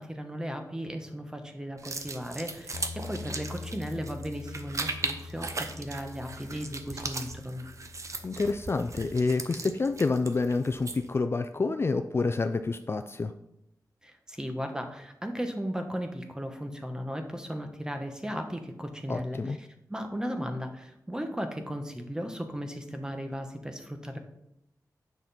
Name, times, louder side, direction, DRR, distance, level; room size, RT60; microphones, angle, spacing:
voice 1, 0.0-7.7 14.0-24.2, equal, 10° right, 5 dB, 1.1 m, -36 dB
sound 1, 1.8-11.2, right 3 dB, 45° right, 0.8 m, -38 dB
Bass guitar, 2.7-9.0, left 4 dB, 85° left, 0.6 m, -44 dB
voice 2, 8.2-13.3 19.1-19.6, left 3 dB, 35° left, 8 dB, 0.4 m, -28 dB
9.0 x 5.9 x 4.2 m, 0.84 s
wide cardioid pair, 110°, 7 cm